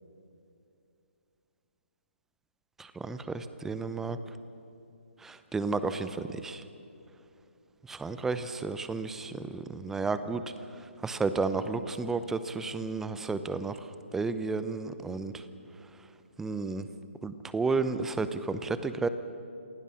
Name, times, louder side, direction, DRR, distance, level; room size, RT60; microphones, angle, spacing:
voice 1, 3.0-4.2 5.5-6.6 7.9-10.4 11.0-13.7 14.1-15.3 16.4-16.8 17.2-19.1, right 4 dB, 5° right, 12 dB, 0.7 m, -32 dB
28.0 x 16.0 x 6.3 m, 2.6 s
figure-of-eight pair, 135°, 7 cm